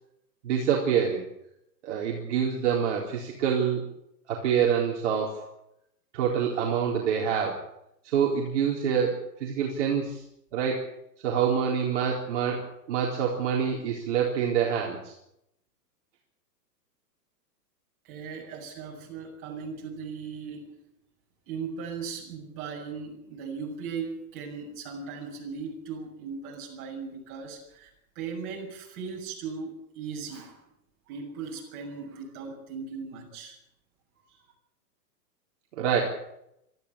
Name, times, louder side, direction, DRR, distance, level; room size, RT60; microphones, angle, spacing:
voice 1, 0.4-1.3 1.8-3.9 4.3-5.4 6.1-7.7 8.0-10.2 10.5-10.9 11.2-12.6 12.9-15.1 35.8-36.0, right 7 dB, 45° right, -2 dB, 4.2 m, -26 dB
voice 2, 18.0-20.8 21.5-30.7 31.1-33.6, right 5 dB, 25° right, -1 dB, 7.3 m, -38 dB
23.5 x 14.5 x 8.8 m, 0.80 s
hypercardioid pair, 170°, 50 cm